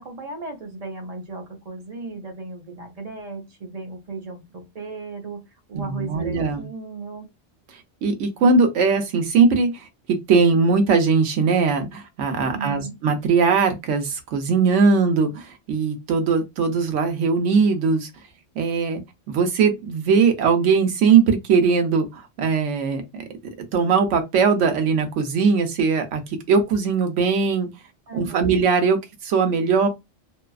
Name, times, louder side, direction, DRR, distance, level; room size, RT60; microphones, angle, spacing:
voice 1, 0.0-5.4 5.7-7.3 12.4-13.0 28.1-28.5, right 3 dB, 40° right, 0.7 m, -35 dB
voice 2, 5.7-6.7 8.0-9.9 10.3-18.1 18.6-19.0 19.3-23.2 23.7-27.7 28.1-29.9, right 5 dB, 75° right, 1.0 m, -20 dB
2.6 x 2.3 x 2.3 m
omnidirectional pair, 1.3 m